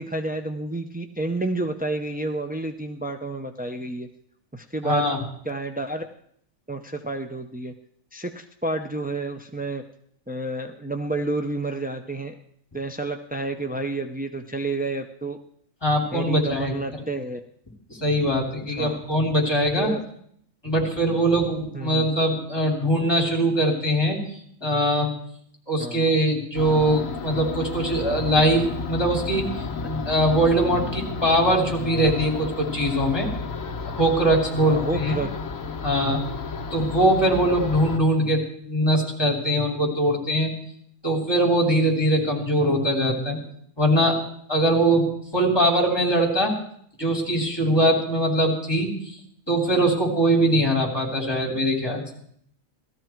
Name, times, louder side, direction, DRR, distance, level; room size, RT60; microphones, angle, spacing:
voice 1, 0.0-4.1 4.5-5.0 5.4-6.0 6.7-7.7 8.1-9.8 10.3-12.3 12.7-15.4 16.1-17.4 18.7-19.0 19.8-20.0 21.7-22.0 25.8-26.0 34.6-35.3, right 2 dB, 15° right, 4 dB, 0.3 m, -30 dB
voice 2, 4.8-5.2 15.8-16.7 18.0-19.9 20.6-24.2 24.6-25.1 25.7-29.5 29.8-33.3 34.0-35.2 35.8-36.2 36.7-40.5 41.0-43.4 43.8-44.2 44.5-45.1 45.3-46.5 47.0-49.1 49.5-52.1, right 1 dB, 20° left, -1 dB, 3.4 m, -22 dB
sound 1, 26.5-38.0, left 4 dB, 80° left, 1.6 m, -32 dB
17.0 x 13.5 x 4.6 m, 0.66 s
omnidirectional pair, 1.4 m